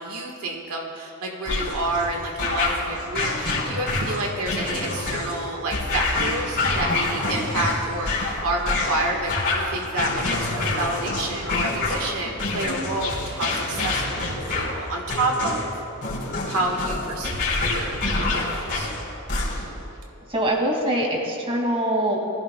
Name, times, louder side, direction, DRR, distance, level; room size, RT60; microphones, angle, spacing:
voice 1, 0.0-15.7 16.5-18.9, right 2 dB, 80° right, 1 dB, 1.5 m, -29 dB
sound 1, 1.4-19.8, left 2 dB, 50° left, 3.8 m, -27 dB
voice 2, 20.3-22.2, right 1 dB, 25° right, -1 dB, 2.3 m, -23 dB
22.5 x 15.5 x 2.3 m, 2.8 s
head